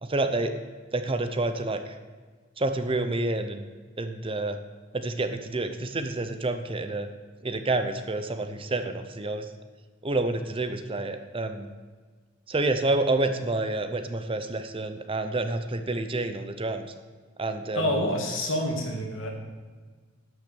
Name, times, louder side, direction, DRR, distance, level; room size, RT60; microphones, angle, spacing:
voice 1, 0.0-0.5 0.9-2.0 2.6-3.6 4.0-4.6 4.9-7.1 7.4-9.5 10.0-11.7 12.5-16.9 17.4-18.0, right 2 dB, 25° right, 8 dB, 0.7 m, -28 dB
voice 2, 17.7-19.3, left 1 dB, 70° left, 1 dB, 2.3 m, -27 dB
11.5 x 6.3 x 7.0 m, 1.5 s
head